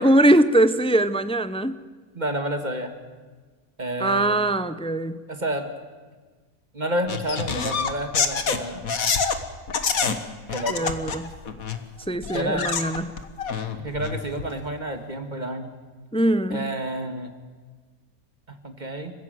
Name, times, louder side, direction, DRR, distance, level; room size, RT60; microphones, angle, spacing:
voice 1, 0.0-1.8 4.0-5.2 10.7-11.3 12.1-13.1 16.1-16.7, right 1 dB, 5° left, 12 dB, 0.4 m, -21 dB
voice 2, 2.2-2.9 3.8-4.5 5.3-5.7 6.7-8.8 10.5-10.9 12.3-12.7 13.8-15.7 16.5-17.3 18.6-19.1, right 1 dB, 30° right, 6 dB, 2.0 m, -29 dB
sound 1, 7.1-9.4 9.7-10.2 10.5-11.8 12.2-14.5, left 5 dB, 70° left, 1.8 m, -26 dB
29.5 x 15.5 x 7.8 m, 1.4 s
omnidirectional pair, 1.5 m